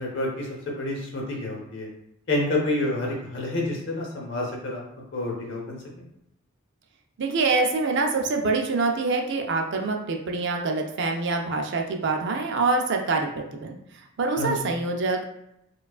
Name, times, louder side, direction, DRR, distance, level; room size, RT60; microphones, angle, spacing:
voice 1, 0.0-1.9 2.3-4.8 5.1-6.0 14.4-14.7, left 2 dB, 55° left, -1 dB, 0.8 m, -29 dB
voice 2, 7.2-13.8 14.2-15.3, right 3 dB, 55° right, 3 dB, 0.4 m, -25 dB
4.6 x 2.3 x 2.3 m, 0.81 s
head